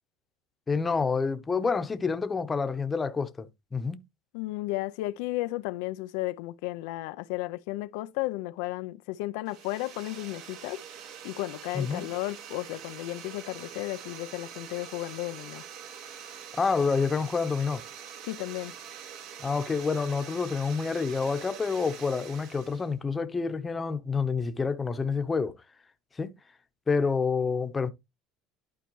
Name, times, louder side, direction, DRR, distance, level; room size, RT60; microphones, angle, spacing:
voice 1, 0.7-4.0 11.7-12.1 16.5-17.8 19.4-25.6 26.2-26.3 26.9-27.9, left 5 dB, 15° left, 0.8 m, -28 dB
voice 2, 4.3-10.8 11.2-15.6 18.2-18.7, left 18 dB, 80° left, 0.4 m, -34 dB
sound 1, 9.5-22.9, right 8 dB, 60° right, 1.6 m, -45 dB
11.5 x 4.4 x 3.1 m
cardioid pair, 140°, 0 cm